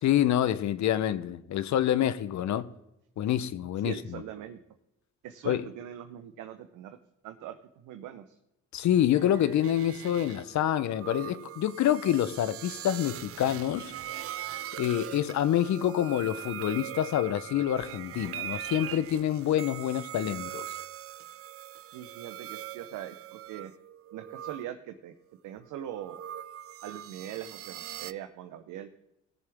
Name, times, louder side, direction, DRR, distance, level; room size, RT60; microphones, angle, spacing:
voice 1, 0.0-2.7 3.2-3.9 5.4-5.7 8.7-13.9 14.8-20.8, left 11 dB, 70° left, 0.8 m, -27 dB
voice 2, 3.8-4.6 5.2-7.0 7.2-8.4 21.9-23.7 24.1-25.2 25.4-26.2 26.8-28.9, right 11 dB, 90° right, 0.8 m, -41 dB
sound 1, 9.1-24.7 25.5-28.1, right 12 dB, 50° right, 0.4 m, -41 dB
17.5 x 7.0 x 3.5 m
cardioid pair, 90°, 30 cm